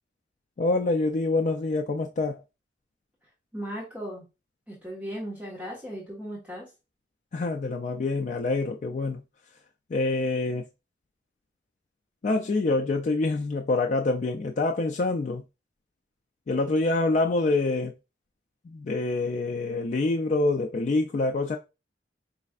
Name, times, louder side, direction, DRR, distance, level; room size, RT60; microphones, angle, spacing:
voice 1, 0.6-2.4 7.3-9.2 9.9-10.6 12.2-15.4 16.5-17.9 18.7-21.6, left 2 dB, 40° left, 0.3 m, -26 dB
voice 2, 3.5-4.2 4.7-6.7, equal, 10° right, 1.3 m, -37 dB
5.0 x 3.2 x 2.4 m
head